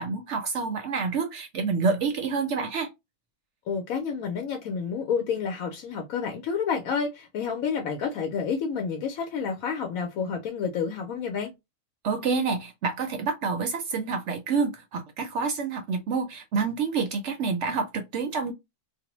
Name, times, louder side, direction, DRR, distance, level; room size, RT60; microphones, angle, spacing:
voice 1, 0.0-2.9 12.0-18.5, right 5 dB, 65° right, 0.7 m, -28 dB
voice 2, 3.7-11.5, left 6 dB, 75° left, 1.0 m, -29 dB
2.5 x 2.0 x 2.9 m
omnidirectional pair, 1.6 m